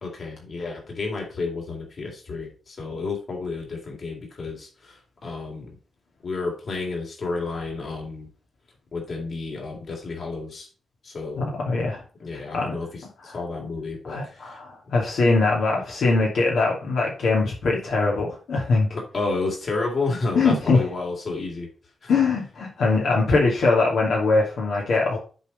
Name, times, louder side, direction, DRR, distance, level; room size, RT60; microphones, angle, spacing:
voice 1, 0.0-5.7 6.2-8.3 8.9-10.7 11.0-11.5 12.2-14.6 18.9-21.7 22.0-22.1, left 3 dB, 55° left, 0 dB, 3.4 m, -31 dB
voice 2, 11.4-12.0 12.5-12.7 13.2-13.3 14.1-18.9 20.4-20.9 22.1-25.2, left 3 dB, 90° left, -2 dB, 2.7 m, -22 dB
8.1 x 4.4 x 5.3 m, 0.36 s
wide cardioid pair, 105°, 0 cm